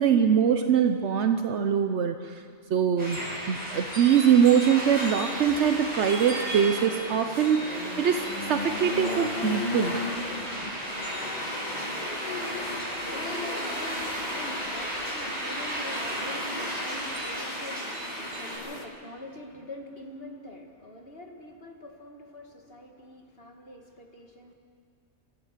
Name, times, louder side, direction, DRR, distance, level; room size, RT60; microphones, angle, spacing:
voice 1, 0.0-2.4 2.7-10.0, right 8 dB, 75° right, 7 dB, 1.1 m, -23 dB
sound 1, 3.0-18.6, right 1 dB, 35° right, 7.2 m, -34 dB
sound 2, 4.7-18.8, left 2 dB, 40° left, 1.8 m, -37 dB
voice 2, 12.2-24.5, left 1 dB, 55° left, 2 dB, 2.1 m, -44 dB
26.5 x 13.5 x 7.4 m, 2.2 s
omnidirectional pair, 1.2 m